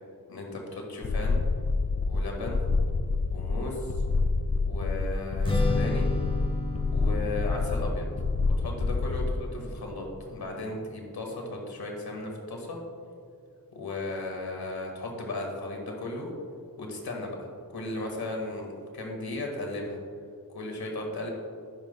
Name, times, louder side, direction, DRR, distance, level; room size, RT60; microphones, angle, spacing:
voice 1, 0.3-1.4 2.0-2.6 3.3-4.0 4.6-6.1 6.9-8.1 8.5-9.5 9.8-12.8 13.7-16.3 16.8-17.4 17.7-20.0 20.5-21.3, left 2 dB, 85° left, 1 dB, 1.8 m, -35 dB
sound 1, 1.0-9.5, left 3 dB, 40° left, 0.6 m, -27 dB
Strum, 5.4-11.7, left 2 dB, 15° left, 0.9 m, -35 dB
11.0 x 9.6 x 2.3 m, 2.4 s
wide cardioid pair, 120°, 37 cm